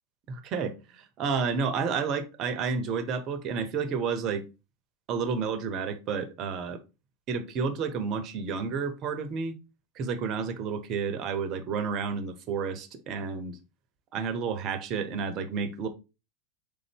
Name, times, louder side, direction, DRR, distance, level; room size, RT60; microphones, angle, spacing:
voice 1, 0.3-4.4 5.1-6.8 7.3-9.5 9.9-13.6 14.1-15.9, right 5 dB, 45° right, 0.8 m, -31 dB
4.0 x 3.5 x 3.4 m
hypercardioid pair, 90°, 0 cm